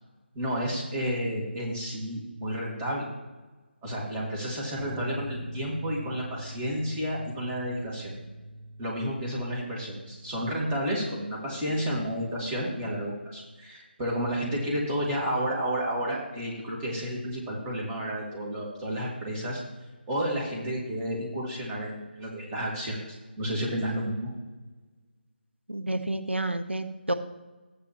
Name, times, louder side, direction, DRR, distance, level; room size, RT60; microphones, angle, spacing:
voice 1, 0.3-3.0 3.8-8.1 8.8-19.6 20.1-24.3, equal, 15° right, -4 dB, 2.1 m, -31 dB
sound 1, 4.8-12.0, right 1 dB, 20° left, 0.9 m, -44 dB
voice 2, 25.7-27.1, right 1 dB, 85° right, 8 dB, 0.8 m, -30 dB
13.5 x 8.6 x 3.0 m, 1.2 s
figure-of-eight pair, 155°, 6 cm